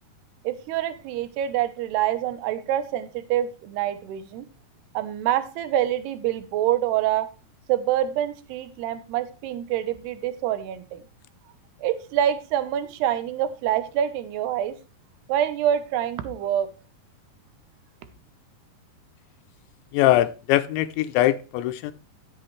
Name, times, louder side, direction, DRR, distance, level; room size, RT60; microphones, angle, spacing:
voice 1, 0.4-4.4 4.9-7.3 7.7-11.0 11.8-14.8 15.3-16.7, right 11 dB, 75° right, 11 dB, 2.9 m, -26 dB
voice 2, 19.9-21.9, left 14 dB, 85° left, 11 dB, 3.0 m, -22 dB
13.0 x 8.0 x 3.3 m, 0.32 s
omnidirectional pair, 5.1 m